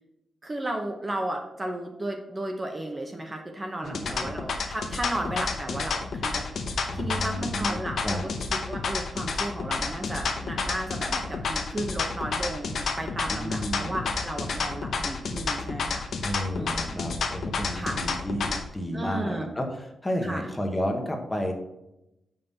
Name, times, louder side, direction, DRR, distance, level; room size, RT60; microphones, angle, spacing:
voice 1, 0.4-6.5 6.9-17.0 17.7-18.0 18.9-19.5 20.2-20.5, right 1 dB, 20° right, 2 dB, 0.8 m, -34 dB
sound 1, 3.8-18.6, left 4 dB, 60° left, 0.9 m, -30 dB
voice 2, 3.8-4.4 6.9-8.2 13.3-14.0 16.2-21.5, equal, 10° left, 3 dB, 1.0 m, -32 dB
7.6 x 5.5 x 4.1 m, 0.89 s
wide cardioid pair, 165°, 0 cm